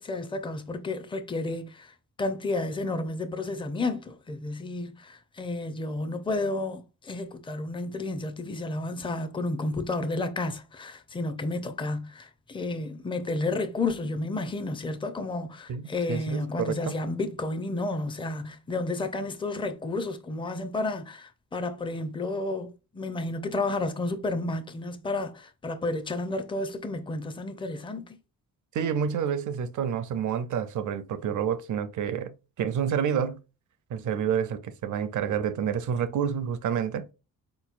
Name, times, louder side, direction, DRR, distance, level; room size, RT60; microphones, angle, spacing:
voice 1, 0.0-28.2, left 2 dB, 15° left, 0.5 m, -31 dB
voice 2, 15.7-16.9 28.7-33.4 33.9-37.1, right 8 dB, 55° right, 0.5 m, -29 dB
3.9 x 3.0 x 2.4 m
cardioid pair, 80°, 36 cm